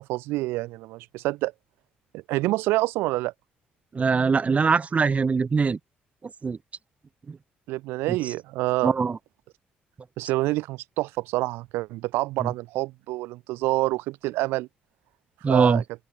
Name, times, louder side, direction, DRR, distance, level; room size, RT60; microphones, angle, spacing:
voice 1, 0.0-1.5 2.3-3.3 7.7-8.9 10.2-14.7 15.5-15.8, right 19 dB, 90° right, 1.1 m, -27 dB
voice 2, 3.9-5.8 6.2-6.6 7.3-7.4 8.1-8.3 8.8-9.2 12.4-12.5 15.4-15.8, right 5 dB, 35° right, 1.3 m, -22 dB
open air
supercardioid pair, 70°, 4 cm